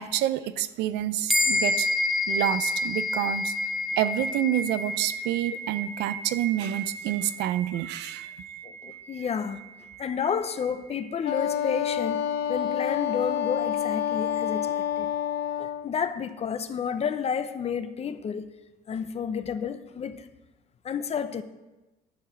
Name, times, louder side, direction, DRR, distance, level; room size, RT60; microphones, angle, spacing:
voice 1, 0.0-1.9 2.3-3.5 4.0-8.3, right 12 dB, 85° right, 0.5 m, -28 dB
sound 1, 1.3-11.0, left 2 dB, ahead, 0.8 m, -30 dB
voice 2, 8.6-9.6 10.0-12.2 12.5-15.1 15.6-18.5 18.9-20.3 20.8-21.4, left 7 dB, 40° left, 0.7 m, -31 dB
Wind instrument woodwind instrument, 11.2-15.9, left 10 dB, 75° left, 0.8 m, -28 dB
11.5 x 4.8 x 7.4 m
cardioid pair, 110°, 17 cm